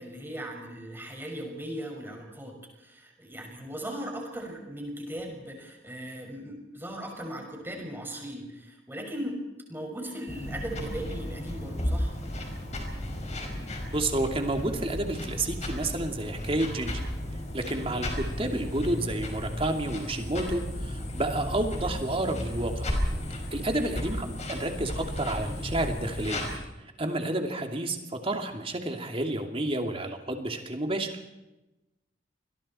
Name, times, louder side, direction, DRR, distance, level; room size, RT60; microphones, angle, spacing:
voice 1, 0.0-9.4 9.7-12.1 23.7-23.9, right 1 dB, 10° right, 1 dB, 6.0 m, -38 dB
sound 1, 10.3-26.6, left 1 dB, 40° left, 5.4 m, -34 dB
voice 2, 13.9-17.0 17.5-22.9 23.5-26.4 27.0-28.0 28.2-31.1, right 1 dB, 30° right, 4 dB, 2.7 m, -30 dB
29.5 x 22.0 x 4.5 m, 0.99 s
head